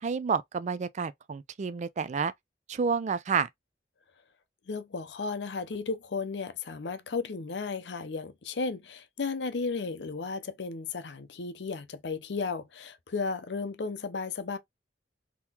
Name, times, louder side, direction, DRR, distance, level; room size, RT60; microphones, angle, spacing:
voice 1, 0.0-2.3 2.7-3.5, right 5 dB, 40° right, 0.3 m, -29 dB
voice 2, 4.7-14.6, left 4 dB, 75° left, 0.6 m, -34 dB
3.7 x 2.9 x 2.8 m
head